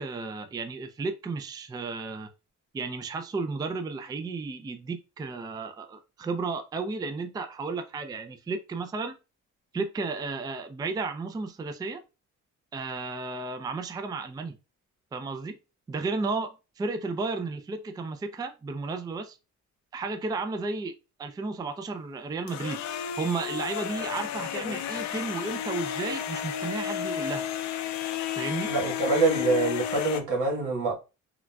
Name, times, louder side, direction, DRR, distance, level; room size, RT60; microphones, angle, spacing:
voice 1, 0.0-2.3 2.7-9.2 9.7-12.0 12.7-14.6 15.1-15.6 15.9-19.4 19.9-20.9 21.2-22.8 23.2-27.5 28.3-28.7, right 3 dB, 15° right, 0.3 m, -33 dB
sound 1, 22.5-30.2, left 10 dB, 70° left, 0.5 m, -32 dB
voice 2, 28.6-30.9, right 3 dB, 85° right, 1.2 m, -25 dB
3.7 x 2.3 x 2.2 m
cardioid pair, 90°, 30 cm